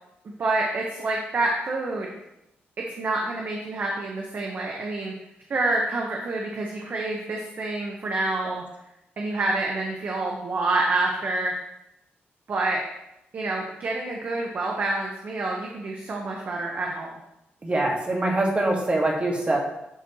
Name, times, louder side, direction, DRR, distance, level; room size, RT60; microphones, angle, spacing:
voice 1, 0.4-2.1 3.0-5.1 5.5-8.6 9.2-11.5 12.5-12.8 13.3-17.1, right 2 dB, 50° right, -1 dB, 1.0 m, -27 dB
voice 2, 17.6-19.6, right 2 dB, 30° right, -1 dB, 1.6 m, -23 dB
11.0 x 4.3 x 3.0 m, 0.87 s
cardioid pair, 105°, 4 cm